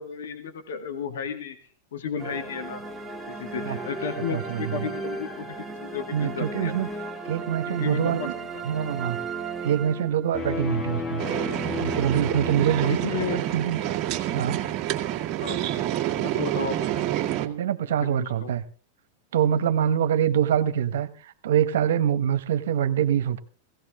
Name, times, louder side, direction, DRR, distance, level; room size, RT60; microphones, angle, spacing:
voice 1, 0.0-1.6 1.9-2.8 3.3-6.8 7.7-8.3 8.5-8.7 12.8-13.4 15.4-15.6 16.2-17.1 18.0-18.5 20.1-20.2, left 6 dB, 80° left, 2.2 m, -33 dB
sound 1, 2.2-10.5, right 4 dB, ahead, 2.0 m, -35 dB
voice 2, 4.3-4.9 6.1-6.9 7.2-8.3 8.6-9.2 9.6-11.2 11.8-13.0 13.3-13.9 14.3-14.6 17.4-18.6 19.3-23.4, right 9 dB, 80° right, 1.3 m, -25 dB
sound 2, 10.3-14.3, left 4 dB, 25° left, 1.7 m, -34 dB
sound 3, 11.2-17.5, right 13 dB, 40° right, 2.0 m, -28 dB
16.5 x 16.5 x 3.8 m
hypercardioid pair, 130°, 0 cm